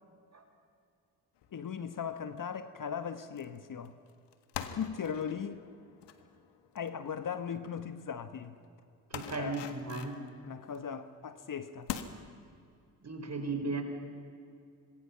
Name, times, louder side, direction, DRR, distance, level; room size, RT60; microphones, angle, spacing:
sound 1, 1.4-1.6 2.1-2.4 3.4-3.6 3.8-7.7 8.0-8.1 8.4-8.6 9.1-10.9 11.3-11.4 11.9-12.0, left 10 dB, 65° left, 1.7 m, -44 dB
voice 1, 1.5-3.9 4.6-5.6 6.7-8.6 9.2-9.5 10.4-11.9, left 7 dB, 45° left, 1.3 m, -38 dB
voice 2, 9.1-10.2 13.0-13.8, right 3 dB, 35° right, 4.7 m, -36 dB
26.5 x 21.5 x 5.9 m
hypercardioid pair, 45°, 45 cm